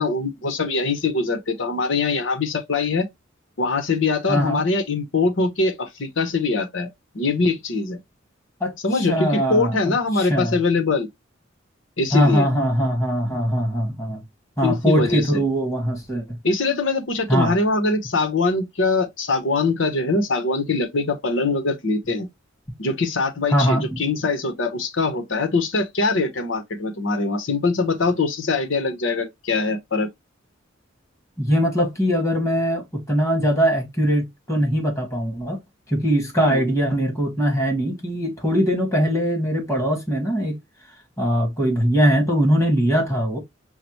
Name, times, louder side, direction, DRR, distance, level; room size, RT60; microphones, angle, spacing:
voice 1, 0.0-3.1 3.6-6.9 7.1-8.0 8.8-11.1 12.0-12.5 14.6-15.4 16.4-22.3 22.8-30.1 36.4-36.6, left 3 dB, 70° left, 0.9 m, -23 dB
voice 2, 4.3-4.6 8.6-10.6 12.1-14.2 14.6-16.2 17.3-17.5 23.5-24.0 31.4-35.6 35.9-40.6 41.2-43.4, equal, 15° left, 1.6 m, -21 dB
5.7 x 2.1 x 3.0 m
head